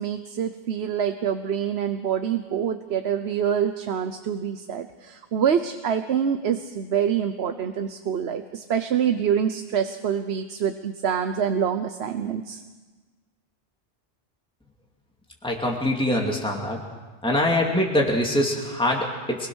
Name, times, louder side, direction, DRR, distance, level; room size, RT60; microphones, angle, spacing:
voice 1, 0.0-12.6, right 8 dB, 90° right, 9 dB, 1.1 m, -26 dB
voice 2, 15.4-16.8 17.2-19.5, left 1 dB, 5° left, -1 dB, 2.5 m, -23 dB
25.0 x 21.5 x 6.3 m, 1.3 s
omnidirectional pair, 1.0 m